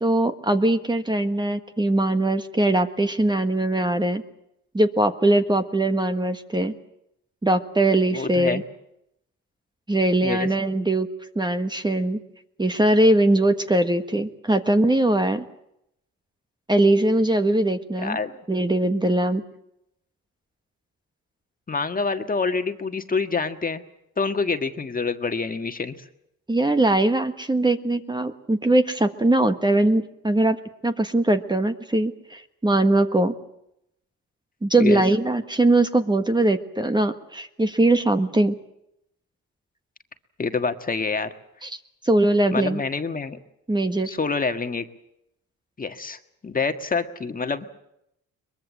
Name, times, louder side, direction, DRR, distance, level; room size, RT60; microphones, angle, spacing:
voice 1, 0.0-4.2 4.7-6.7 7.4-8.6 9.9-11.1 11.3-12.2 12.6-15.4 16.7-18.2 18.5-19.4 26.5-30.6 30.8-33.3 34.6-38.6 41.6-41.8 42.0-42.8 43.7-44.1, right 1 dB, 15° right, 8 dB, 1.5 m, -21 dB
voice 2, 8.1-8.6 10.2-10.5 18.0-18.3 21.7-23.8 24.2-26.1 34.8-35.0 40.4-41.3 42.5-43.4 44.0-44.9 45.8-47.7, left 4 dB, 30° left, 7 dB, 1.7 m, -26 dB
22.5 x 22.0 x 7.6 m, 0.80 s
cardioid pair, 90°, 30 cm